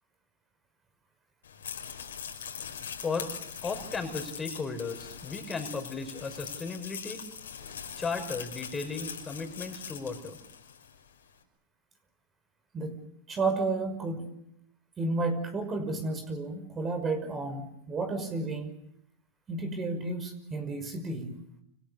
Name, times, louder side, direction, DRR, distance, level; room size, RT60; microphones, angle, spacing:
sound 1, 1.4-11.0, left 7 dB, 80° left, 5.3 m, -42 dB
voice 1, 3.0-3.3 3.6-7.2 8.0-10.4, left 4 dB, 15° left, 5 dB, 6.3 m, -35 dB
voice 2, 13.3-14.3 15.0-18.7 19.5-21.4, right 3 dB, 25° right, 7 dB, 5.8 m, -32 dB
29.5 x 26.5 x 6.9 m, 0.78 s
hypercardioid pair, 105°, 0 cm